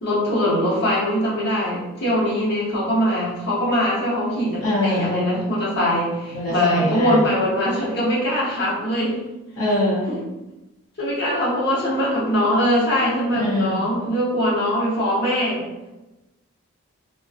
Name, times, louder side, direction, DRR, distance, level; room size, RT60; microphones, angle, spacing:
voice 1, 0.0-9.2 10.1-10.2 11.0-15.6, equal, 50° left, -7 dB, 0.8 m, -22 dB
voice 2, 4.6-5.2 6.3-7.2 9.5-10.1 13.3-13.8, left 1 dB, 75° left, -8 dB, 0.7 m, -23 dB
2.5 x 2.1 x 2.3 m, 1.0 s
head